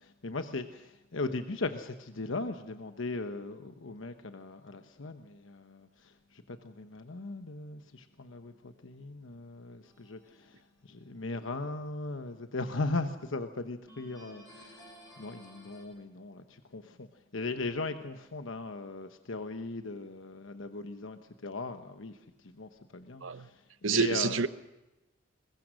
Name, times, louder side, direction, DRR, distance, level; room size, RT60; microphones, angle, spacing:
voice 1, 0.0-14.9 15.2-17.1 17.3-22.3 22.5-24.5, left 3 dB, 80° left, 1.0 m, -38 dB
sound 1, 9.8-10.5 13.9-15.8, right 1 dB, 15° left, 6.2 m, -54 dB
voice 2, 23.8-24.5, right 6 dB, 80° right, 0.9 m, -28 dB
22.0 x 22.0 x 6.4 m
head